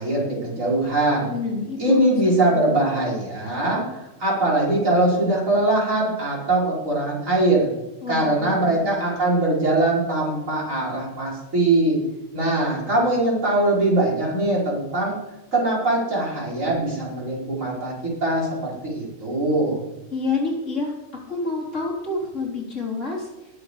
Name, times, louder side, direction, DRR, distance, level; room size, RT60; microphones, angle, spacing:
voice 1, 0.0-1.3 1.8-7.7 8.1-12.0 12.3-15.2 15.5-19.8, right 2 dB, 90° right, -5 dB, 5.8 m, -22 dB
voice 2, 1.3-2.1 2.5-2.7 8.0-8.9 20.1-20.9 21.3-23.3, left 3 dB, 65° left, -2 dB, 4.1 m, -28 dB
20.0 x 8.2 x 5.0 m, 0.97 s
omnidirectional pair, 1.4 m